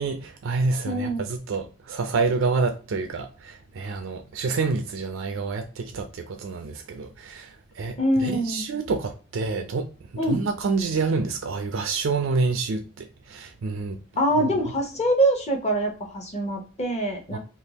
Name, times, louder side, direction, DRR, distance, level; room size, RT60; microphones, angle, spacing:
voice 1, 0.0-8.0 8.2-9.9 10.3-14.0 17.3-17.4, right 4 dB, 70° right, 0.4 m, -28 dB
voice 2, 0.8-1.2 8.0-8.6 10.2-10.4 14.2-17.4, right 1 dB, 35° left, 0.9 m, -24 dB
3.5 x 2.3 x 2.9 m
head